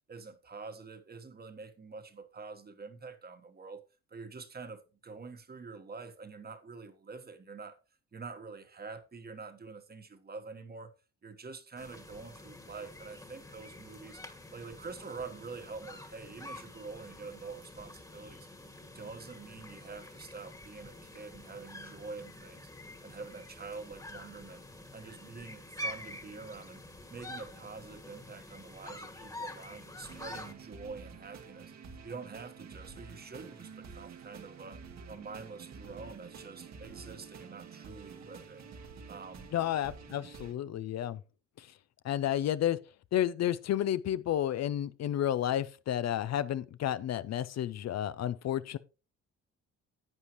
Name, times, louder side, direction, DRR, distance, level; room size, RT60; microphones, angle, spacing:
voice 1, 0.1-3.8 4.1-7.8 8.1-10.9 11.2-14.2 14.5-18.5 18.9-22.7 23.0-24.6 24.9-26.8 27.1-31.7 32.0-34.8 35.1-38.7 39.1-39.5, right 4 dB, 30° right, 1.3 m, -46 dB
sound 1, 11.8-30.5, left 1 dB, 10° left, 1.5 m, -47 dB
sound 2, 30.1-40.5, right 5 dB, 65° right, 1.7 m, -49 dB
voice 2, 39.5-41.2 41.6-41.7 42.0-42.8 43.1-48.8, left 11 dB, 60° left, 0.6 m, -31 dB
11.0 x 8.3 x 3.0 m
cardioid pair, 90°, 30 cm